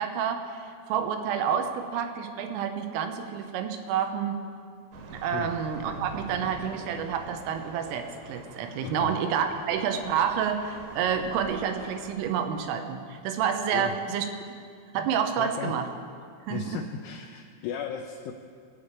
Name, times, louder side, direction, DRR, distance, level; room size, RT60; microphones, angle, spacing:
voice 1, 0.0-4.4 5.1-14.3 14.9-15.9 16.5-16.8, right 8 dB, 85° right, 7 dB, 3.5 m, -29 dB
sound 1, 4.9-12.2, right 3 dB, 60° right, 2.5 m, -45 dB
voice 2, 15.4-15.7 16.5-18.3, left 8 dB, 80° left, 2 dB, 2.9 m, -35 dB
20.5 x 8.6 x 5.0 m, 2.2 s
omnidirectional pair, 5.8 m